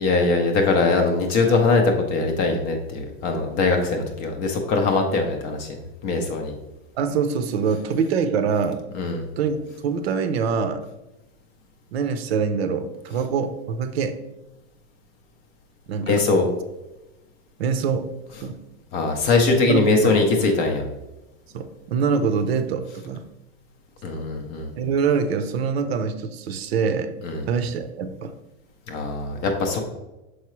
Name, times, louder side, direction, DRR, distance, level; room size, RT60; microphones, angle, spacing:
voice 1, 0.0-5.8 6.0-6.5 8.9-9.2 16.1-16.5 18.9-20.8 24.0-24.7 27.2-27.5 28.9-29.8, left 3 dB, 20° left, 3 dB, 0.4 m, -21 dB
voice 2, 7.0-8.8 9.4-10.9 11.9-14.2 15.9-16.2 17.6-18.1 18.4-18.6 19.7-20.2 21.5-23.2 24.8-27.1 27.5-28.3, right 6 dB, 70° right, 10 dB, 0.7 m, -24 dB
6.5 x 4.7 x 3.0 m, 1.0 s
supercardioid pair, 170°, 32 cm